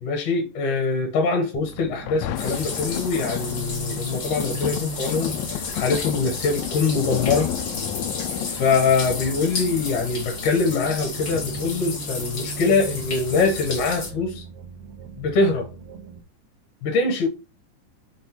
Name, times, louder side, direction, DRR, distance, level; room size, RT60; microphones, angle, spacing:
voice 1, 0.0-7.5 8.4-14.4 15.2-15.7 16.8-17.3, left 4 dB, 65° left, 2.8 m, -23 dB
sound 1, 1.5-16.2, right 6 dB, 65° right, 2.2 m, -40 dB
Thunder, 1.7-12.7 13.4-13.5, left 14 dB, 85° left, 2.3 m, -33 dB
sound 2, 2.3-14.1, left 4 dB, 40° left, 2.0 m, -33 dB
6.4 x 3.8 x 4.5 m
omnidirectional pair, 4.1 m